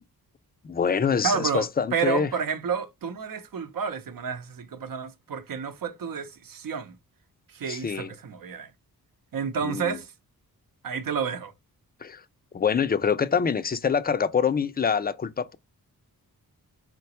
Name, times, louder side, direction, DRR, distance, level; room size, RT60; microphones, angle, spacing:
voice 1, 0.6-2.3 7.7-8.1 9.6-10.0 12.0-12.2 12.5-15.6, left 6 dB, 25° left, 0.4 m, -25 dB
voice 2, 1.2-1.7 1.9-7.0 7.5-8.7 9.3-10.1 10.8-11.5, right 6 dB, 60° right, 0.7 m, -30 dB
3.9 x 2.2 x 2.8 m
cardioid pair, 55°, 39 cm